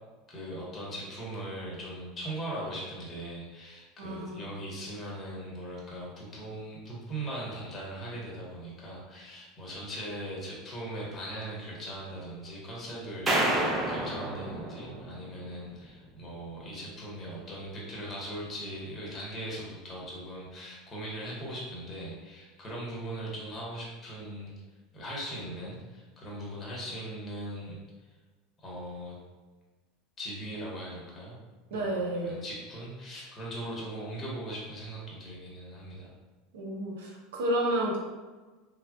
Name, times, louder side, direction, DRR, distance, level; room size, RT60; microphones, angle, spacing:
voice 1, 0.3-24.5 24.9-27.8 28.6-29.2 30.2-31.4 31.7-36.1, right 1 dB, 30° left, -4 dB, 1.0 m, -39 dB
voice 2, 4.0-4.4 31.7-32.4 36.5-38.0, right 1 dB, 70° right, -1 dB, 0.7 m, -31 dB
sound 1, 13.3-15.6, right 1 dB, 25° right, 0.5 m, -29 dB
3.4 x 2.0 x 2.2 m, 1.3 s
hypercardioid pair, 85°, 0 cm